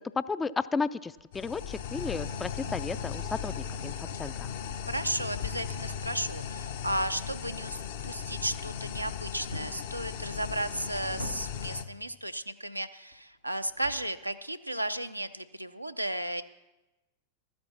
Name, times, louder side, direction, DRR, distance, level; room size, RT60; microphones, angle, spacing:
voice 1, 0.2-4.5, left 4 dB, 15° left, 16 dB, 0.3 m, -33 dB
sound 1, 1.1-4.0 4.4-6.7 9.5-10.0 10.6-11.8 13.1-14.4, left 2 dB, 85° left, 1.2 m, -48 dB
sound 2, 1.3-11.8, left 7 dB, 55° left, 0.7 m, -37 dB
voice 2, 4.8-16.4, right 1 dB, 90° right, 9 dB, 0.5 m, -34 dB
13.0 x 9.5 x 5.8 m, 1.1 s
figure-of-eight pair, 90°, 0 cm